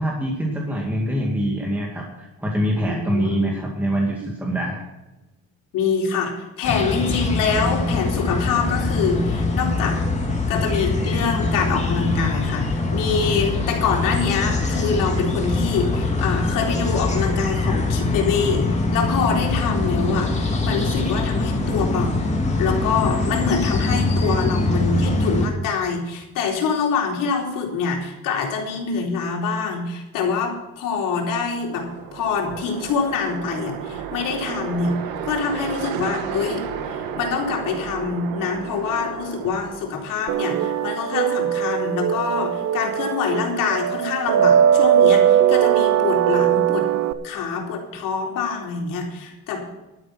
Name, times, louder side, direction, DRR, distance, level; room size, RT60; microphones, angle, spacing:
voice 1, 0.0-4.8, equal, 5° right, -2 dB, 2.3 m, -24 dB
voice 2, 2.9-3.6 5.7-10.0 10.5-22.3 22.6-46.9 47.2-49.7, left 5 dB, 70° left, 1 dB, 4.0 m, -25 dB
sound 1, 6.6-25.5, left 2 dB, 20° left, 2.4 m, -23 dB
sound 2, 31.5-40.5, right 8 dB, 90° right, 1.9 m, -32 dB
sound 3, 40.3-47.1, right 10 dB, 55° right, 0.8 m, -19 dB
12.0 x 10.5 x 5.9 m, 1.0 s
cardioid pair, 145°, 34 cm